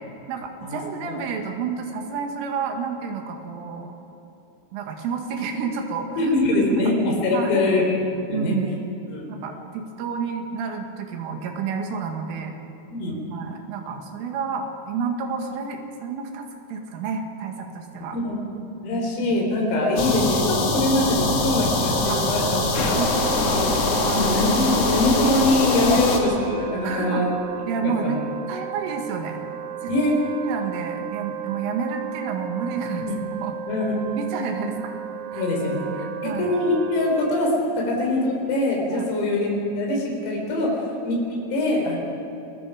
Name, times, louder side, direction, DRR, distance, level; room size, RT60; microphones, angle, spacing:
voice 1, 0.3-4.0 4.7-6.3 6.7-6.9 7.3-7.8 8.3-8.7 9.3-12.5 13.3-18.2 18.9-19.4 22.1-22.3 22.9-23.6 24.0-24.3 25.8-26.1 26.8-27.3 27.7-28.2 28.5-29.4 29.8-29.9 30.4-33.0 33.4-33.5 34.2-34.8 35.3-35.4 36.0-36.6 38.9-39.1 40.6-40.7, right 5 dB, 75° right, 3 dB, 4.2 m, -30 dB
voice 2, 6.2-7.8 8.3-8.6 9.1-9.3 12.9-13.2 18.1-18.4 18.8-22.6 22.9-23.0 23.5-23.7 24.1-27.4 28.0-28.2 29.9-30.2 33.0-33.1 33.7-33.9 34.6-34.7 35.3-35.9 36.2-40.7 41.0-41.2 41.5-42.0, left 2 dB, 85° left, -1 dB, 7.0 m, -23 dB
Wind instrument woodwind instrument, 19.6-37.7, right 9 dB, 90° right, 3.9 m, -35 dB
sound 1, 20.0-26.2, left 2 dB, 50° left, 1.9 m, -23 dB
28.0 x 21.0 x 5.0 m, 3.0 s
omnidirectional pair, 5.9 m